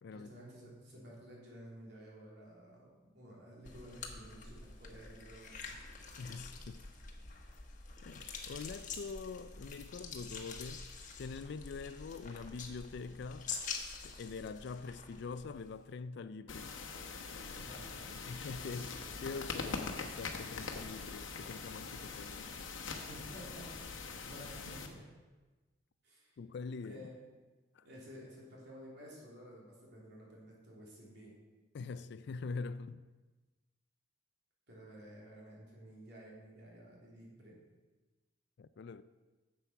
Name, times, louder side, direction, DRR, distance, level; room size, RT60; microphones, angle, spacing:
voice 1, 0.1-5.7 17.6-17.8 23.0-25.0 26.0-26.3 26.8-27.4 27.8-31.4 34.7-37.6, equal, 60° right, 3.0 m, -53 dB
sound 1, 3.6-15.8, left 5 dB, 40° left, 1.1 m, -47 dB
voice 2, 6.2-6.8 8.0-10.9 11.2-13.5 14.0-16.7 18.1-22.5 26.4-27.1 27.8-27.9 31.7-33.0 38.6-39.0, left 4 dB, 60° left, 0.4 m, -44 dB
sound 2, 16.5-24.9, left 4 dB, 90° left, 1.1 m, -43 dB
8.1 x 7.6 x 5.7 m
head